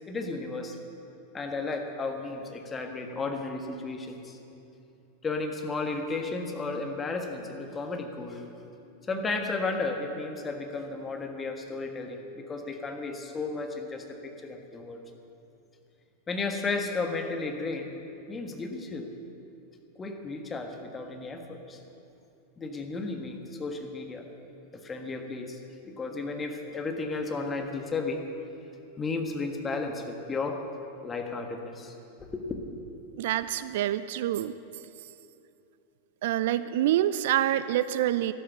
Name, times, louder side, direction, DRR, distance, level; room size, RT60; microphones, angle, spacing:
voice 1, 0.1-0.8 1.3-4.4 5.2-8.4 9.1-15.0 16.3-17.9 18.3-19.1 20.0-21.8 22.6-24.3 24.7-25.6 25.8-28.2 29.0-30.6 31.0-31.9 32.2-32.6, left 3 dB, 20° left, 4 dB, 1.5 m, -33 dB
voice 2, 33.2-34.6 36.2-38.3, right 13 dB, 55° right, 14 dB, 0.4 m, -26 dB
12.5 x 12.0 x 7.0 m, 2.8 s
figure-of-eight pair, 90°, 0 cm